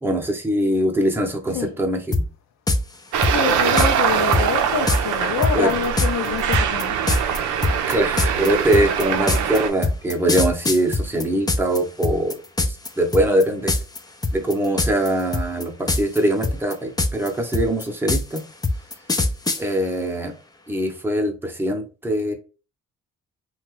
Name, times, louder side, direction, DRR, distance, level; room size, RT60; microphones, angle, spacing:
voice 1, 0.0-2.3 5.5-5.8 7.9-13.7 14.3-18.5 19.6-20.3 20.7-22.3, right 1 dB, 5° right, 0.8 m, -22 dB
sound 1, 2.1-2.2 2.7-2.8 3.2-3.9 4.3-4.4 4.9-5.0 5.4-11.8 12.0-12.9 13.1-13.4 13.7-14.0 14.2-15.1 15.3-16.2 16.4-19.6, left 2 dB, 15° left, 0.4 m, -21 dB
Traffic noise roadway noise, 3.1-9.7, right 8 dB, 75° right, 0.6 m, -23 dB
voice 2, 3.3-7.1, left 7 dB, 60° left, 0.6 m, -26 dB
2.9 x 2.3 x 3.0 m
cardioid pair, 90°, 30 cm